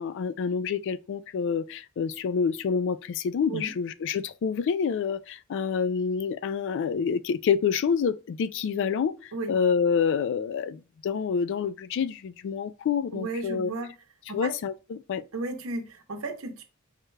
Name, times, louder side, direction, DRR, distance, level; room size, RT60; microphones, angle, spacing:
voice 1, 0.0-13.7 14.3-15.2, left 6 dB, 60° left, 0.3 m, -27 dB
voice 2, 13.1-13.9 14.3-14.6 15.3-16.6, right 2 dB, 75° right, 0.8 m, -34 dB
4.9 x 2.2 x 3.2 m
head